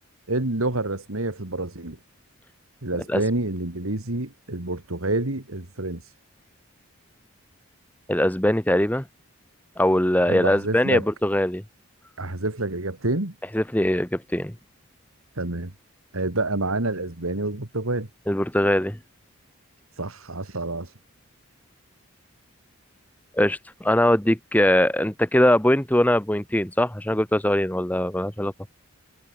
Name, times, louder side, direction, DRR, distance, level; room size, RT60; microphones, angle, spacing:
voice 1, 0.3-2.0 2.8-6.0 10.3-11.1 12.2-13.3 15.4-15.7 16.1-18.1 20.0-20.9, right 2 dB, 75° right, 2.5 m, -28 dB
voice 2, 8.1-9.0 9.8-11.6 13.5-14.5 18.3-19.0 23.3-28.5, left 1 dB, 5° left, 0.9 m, -21 dB
head